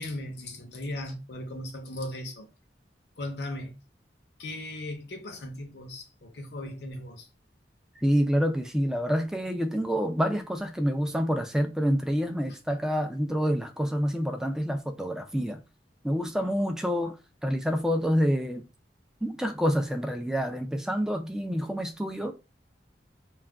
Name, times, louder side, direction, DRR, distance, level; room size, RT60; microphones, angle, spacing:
voice 1, 0.0-2.5 3.2-3.8 4.4-7.3, left 1 dB, 65° left, 0.7 m, -37 dB
voice 2, 8.0-15.6 16.0-17.2 17.4-18.6 19.2-22.3, equal, 5° right, 0.3 m, -27 dB
2.3 x 2.2 x 3.4 m
head